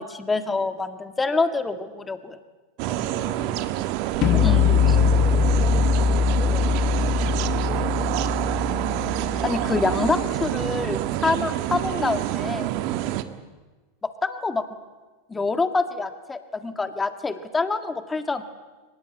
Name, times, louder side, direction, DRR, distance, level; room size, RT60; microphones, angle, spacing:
voice 1, 0.0-2.4 4.4-4.7 9.4-12.8 14.2-14.6 15.3-18.4, left 3 dB, 15° left, 9 dB, 2.0 m, -26 dB
voice 2, 2.8-3.7 4.3-5.7 6.1-8.3, right 2 dB, 15° right, 4 dB, 5.7 m, -38 dB
sound 1, 2.8-13.2, right 14 dB, 55° right, 1.5 m, -27 dB
sound 2, 4.2-10.2, left 7 dB, 45° left, 1.9 m, -22 dB
23.5 x 20.0 x 8.2 m, 1.3 s
hypercardioid pair, 90°, 0 cm